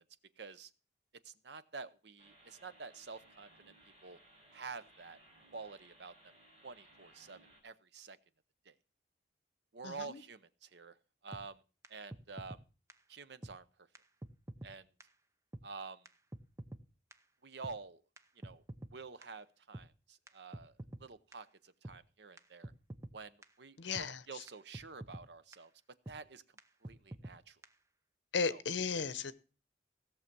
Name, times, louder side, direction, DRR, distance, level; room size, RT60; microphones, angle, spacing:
voice 1, 0.4-0.7 1.2-3.7 4.0-4.2 4.5-5.2 5.5-6.3 6.6-8.2 8.6-8.7 9.7-11.0 11.2-11.6 11.9-12.6 13.1-13.9 14.6-14.9 15.6-16.0 17.4-18.0 18.4-18.6 18.9-22.7 23.1-25.7 26.1-26.4 26.8-27.6 28.5-28.6, right 4 dB, 70° right, 0.7 m, -49 dB
sound 1, 2.2-7.6, right 1 dB, 35° right, 4.6 m, -63 dB
voice 2, 9.8-10.2 23.8-24.4 28.3-29.3, left 5 dB, 85° left, 0.8 m, -36 dB
sound 2, 11.3-11.4 11.8-11.9 12.1-12.6 12.9-13.0 13.4-13.5 13.9-14.0 14.2-14.7 15.0-15.1 15.5-15.6 16.0-16.1 16.3-16.8 17.1-17.2 17.6-17.7 18.2-18.9 19.2-19.3 19.7-19.9 20.3-20.4 20.5-21.0 21.3-21.4 21.8-22.0 22.4-22.5 22.6-23.1 23.4-23.5 23.9-24.1 24.5-24.6 24.7-25.2 25.5-25.6 26.1-26.2 26.6-26.7 26.8-27.4 27.6-27.7, right 1 dB, 15° right, 0.7 m, -47 dB
16.5 x 6.6 x 6.0 m
head